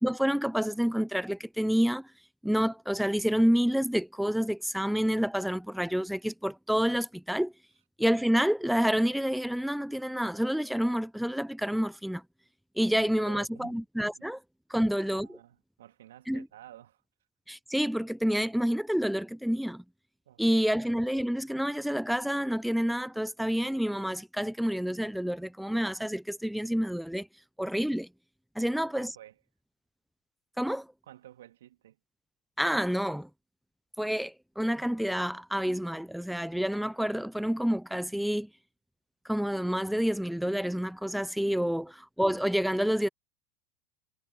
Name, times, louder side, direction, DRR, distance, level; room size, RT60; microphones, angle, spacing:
voice 1, 0.0-2.1 2.4-7.5 8.0-12.2 12.8-14.4 14.7-15.4 16.3-16.4 17.5-19.8 20.4-27.3 27.6-28.1 28.6-29.1 30.6-30.9 32.6-33.3 34.0-38.5 39.3-43.1, equal, ahead, 0.4 m, -28 dB
voice 2, 13.0-13.8 14.2-14.3 14.7-17.0 20.3-20.4 20.7-21.1 28.6-29.4 31.0-32.0, right 13 dB, 75° right, 2.2 m, -52 dB
hypercardioid pair, 85°, 0 cm